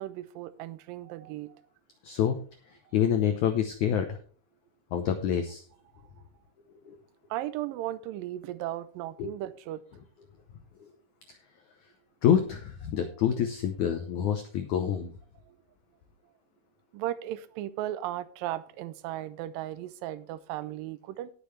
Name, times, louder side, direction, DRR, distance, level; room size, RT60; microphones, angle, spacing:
voice 1, 0.0-1.6 7.3-9.8 15.5-15.6 16.9-21.3, right 13 dB, 85° right, 2.0 m, -36 dB
voice 2, 2.0-2.4 2.9-4.2 4.9-5.6 6.8-7.0 9.2-9.3 10.8-10.9 12.2-15.1, left 9 dB, 90° left, 1.7 m, -27 dB
18.0 x 6.9 x 3.3 m
omnidirectional pair, 4.7 m